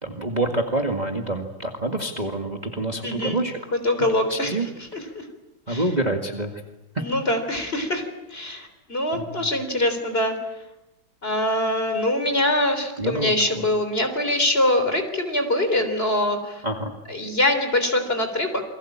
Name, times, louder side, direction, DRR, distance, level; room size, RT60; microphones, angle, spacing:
voice 1, 0.0-3.6 4.3-4.7 5.7-6.6 6.9-7.0 9.1-9.5 13.0-13.3 16.6-16.9, right 2 dB, 20° right, 3 dB, 2.0 m, -27 dB
voice 2, 3.0-3.4 3.8-4.5 4.9-5.2 5.7-5.8 7.0-8.0 8.3-10.4 11.2-16.6 17.1-18.6, left 1 dB, 30° left, 7 dB, 3.9 m, -23 dB
28.5 x 22.5 x 8.7 m, 0.99 s
omnidirectional pair, 2.1 m